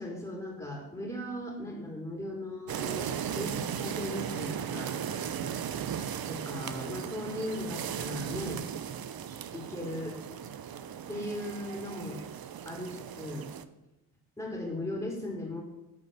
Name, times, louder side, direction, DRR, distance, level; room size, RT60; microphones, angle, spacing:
voice 1, 0.0-5.0 6.3-8.6 9.5-10.2 11.1-12.2 12.6-13.5 14.4-15.6, left 1 dB, 10° left, -1 dB, 2.7 m, -38 dB
sound 1, 2.7-13.6, right 8 dB, 50° right, 0.7 m, -37 dB
8.8 x 3.9 x 6.8 m, 0.95 s
supercardioid pair, 45°, 49 cm